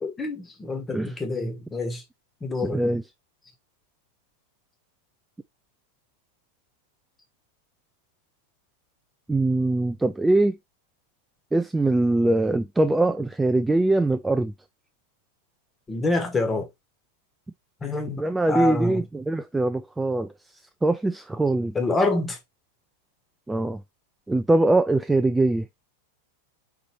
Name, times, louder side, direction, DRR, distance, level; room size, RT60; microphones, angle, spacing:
voice 1, 0.0-2.0 2.4-2.8 15.9-16.7 17.8-18.2 18.5-19.0 21.7-22.4, left 2 dB, 15° left, 1.4 m, -26 dB
voice 2, 2.6-3.0 9.3-10.6 11.5-14.5 18.2-20.3 20.8-21.7 23.5-23.8 24.3-25.7, right 2 dB, 5° right, 0.3 m, -22 dB
4.5 x 3.7 x 2.9 m
figure-of-eight pair, 90°, 0 cm